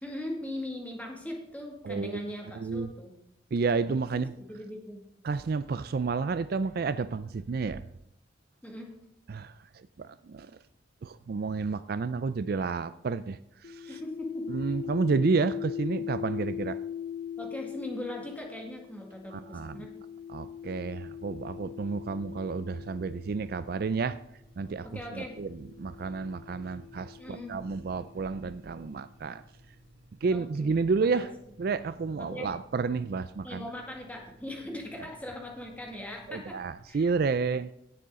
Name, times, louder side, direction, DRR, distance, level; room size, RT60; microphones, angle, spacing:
voice 1, 0.0-3.1 4.1-5.0 8.6-8.9 13.8-14.5 17.4-19.9 24.8-25.4 27.2-27.6 30.3-31.3 32.2-32.5 33.4-36.6 36.9-37.1, left 1 dB, 10° left, 1 dB, 2.0 m, -40 dB
voice 2, 2.5-2.9 3.5-4.3 5.2-7.8 9.3-10.5 11.0-13.9 14.5-16.8 19.3-19.9 20.3-24.2 24.6-24.9 25.1-25.5 25.8-29.4 30.2-31.3 31.6-33.6 36.3-37.7, right 4 dB, 50° right, 13 dB, 0.4 m, -30 dB
sound 1, 13.6-24.0 24.9-28.6, left 9 dB, 50° left, 0.6 m, -41 dB
sound 2, 21.8-36.9, right 1 dB, 90° right, 1.9 m, -58 dB
17.0 x 6.8 x 3.7 m, 0.75 s
head